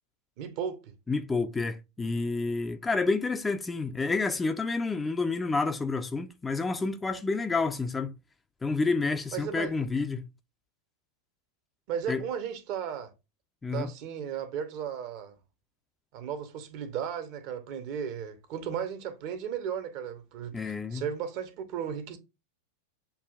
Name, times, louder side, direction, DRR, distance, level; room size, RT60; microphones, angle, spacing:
voice 1, 0.4-0.9 9.3-9.9 11.9-13.1 13.7-15.3 16.1-22.2, right 8 dB, 45° right, 0.7 m, -35 dB
voice 2, 1.1-8.1 8.6-10.3 12.1-12.2 13.6-13.9 20.5-21.0, left 3 dB, 10° left, 0.4 m, -29 dB
6.7 x 2.4 x 2.3 m
figure-of-eight pair, 90°, 0 cm